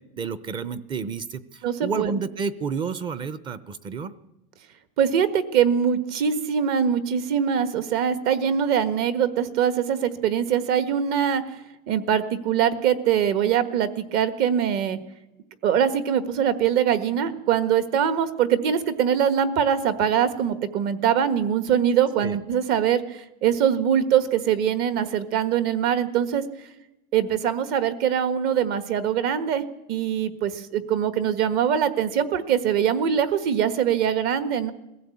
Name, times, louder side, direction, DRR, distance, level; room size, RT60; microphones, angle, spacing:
voice 1, 0.2-4.1 22.2-22.4, right 5 dB, 20° right, 16 dB, 0.7 m, -30 dB
voice 2, 1.6-2.2 5.0-11.4 11.9-15.0 15.6-26.4 27.1-29.6 29.9-34.7, right 8 dB, 45° right, 11 dB, 1.5 m, -23 dB
21.5 x 15.0 x 8.5 m, 0.94 s
supercardioid pair, 165°, 21 cm